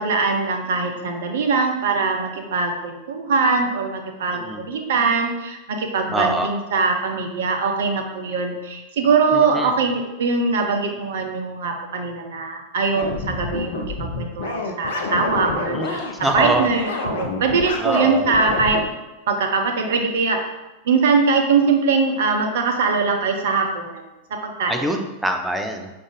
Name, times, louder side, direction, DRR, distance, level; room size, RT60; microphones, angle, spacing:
voice 1, 0.0-16.0 16.3-18.8 19.3-20.4 20.8-24.0 24.3-24.9, right 4 dB, 60° right, 4 dB, 0.6 m, -22 dB
voice 2, 4.3-4.6 6.1-6.5 9.3-9.7 15.7-16.7 17.8-18.3 24.7-25.9, right 1 dB, 5° right, 3 dB, 0.5 m, -24 dB
sound 1, 12.9-18.8, left 3 dB, 55° left, 0.5 m, -28 dB
5.0 x 2.5 x 3.5 m, 1.0 s
figure-of-eight pair, 90°, 0 cm